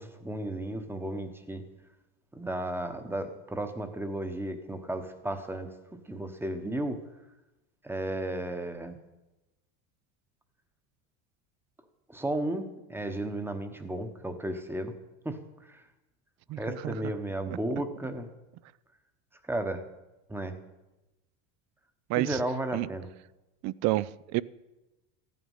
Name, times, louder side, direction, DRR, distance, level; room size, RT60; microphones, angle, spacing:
voice 1, 0.0-1.6 2.3-5.7 6.1-7.0 7.8-9.0 12.1-14.9 15.2-15.8 16.6-18.3 19.4-19.8 20.3-20.6 22.2-23.1, right 1 dB, 5° right, 1.0 m, -34 dB
voice 2, 16.5-17.1 22.1-22.4 22.7-22.9 23.6-24.4, right 18 dB, 45° right, 0.4 m, -30 dB
14.0 x 9.5 x 5.6 m
supercardioid pair, 125°, 38 cm